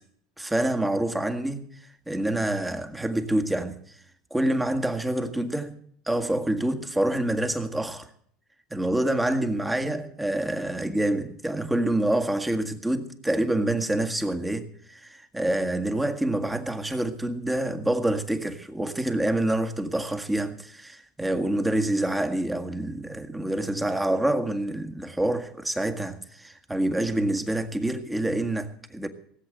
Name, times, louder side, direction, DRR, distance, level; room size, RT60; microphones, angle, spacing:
voice 1, 0.4-4.0 4.3-5.8 6.1-8.1 8.7-29.1, right 1 dB, 10° right, 1.8 m, -27 dB
18.0 x 8.0 x 7.9 m
supercardioid pair, 95°, 0 cm